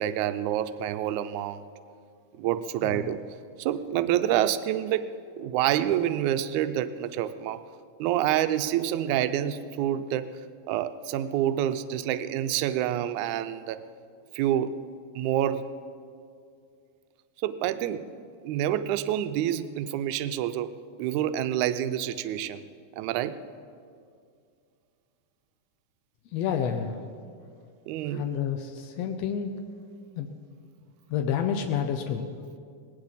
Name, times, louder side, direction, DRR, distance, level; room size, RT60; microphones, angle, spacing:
voice 1, 0.0-1.6 2.4-3.2 3.6-5.0 5.4-7.6 8.0-10.3 10.7-13.8 14.3-14.8 15.1-15.6 17.4-18.0 18.4-20.7 21.0-22.6 23.0-23.4 27.9-28.3, right 11 dB, 80° right, 11 dB, 1.8 m, -27 dB
voice 2, 26.3-27.0 28.1-29.5 30.1-30.3 31.1-32.3, left 8 dB, 80° left, 5 dB, 1.5 m, -29 dB
19.5 x 17.5 x 4.1 m, 2.3 s
omnidirectional pair, 3.9 m